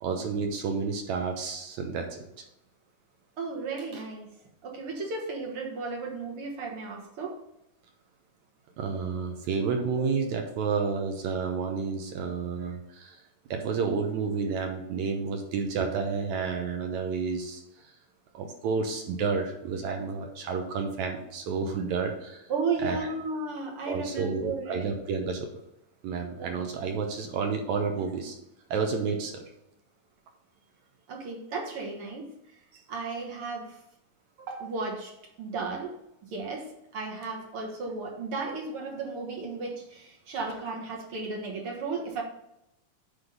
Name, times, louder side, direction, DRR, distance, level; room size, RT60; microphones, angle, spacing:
voice 1, 0.0-2.2 8.8-13.1 13.5-17.6 18.3-22.4 22.8-23.0 23.9-25.5 26.0-28.4 28.7-29.3, right 5 dB, 70° right, 4 dB, 2.1 m, -30 dB
voice 2, 3.4-4.3 4.6-7.4 22.5-24.9 26.4-26.5 31.1-32.6 32.9-33.8 34.4-35.9 36.2-42.2, right 4 dB, 55° right, 0 dB, 1.9 m, -34 dB
9.8 x 3.5 x 6.7 m, 0.85 s
omnidirectional pair, 3.7 m